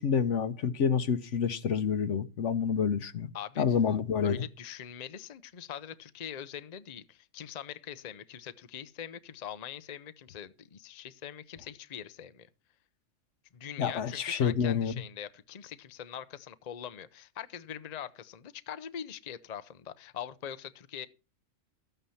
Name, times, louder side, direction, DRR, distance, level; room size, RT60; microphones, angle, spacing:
voice 1, 0.0-3.3 3.6-4.4 13.8-14.9, left 7 dB, 70° left, 1.2 m, -28 dB
voice 2, 3.3-3.6 4.2-12.5 13.5-21.1, left 9 dB, 40° left, 0.7 m, -43 dB
13.5 x 9.1 x 5.6 m
omnidirectional pair, 1.3 m